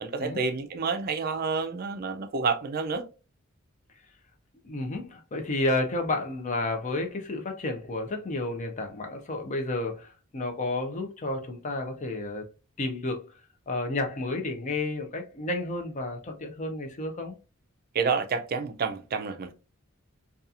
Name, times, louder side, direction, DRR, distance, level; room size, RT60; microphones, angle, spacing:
voice 1, 0.0-3.0 17.9-19.5, right 5 dB, 45° right, 0.4 m, -29 dB
voice 2, 4.6-12.5 12.8-13.3 13.7-17.4, left 2 dB, 35° left, 0.5 m, -31 dB
2.7 x 2.3 x 2.4 m
head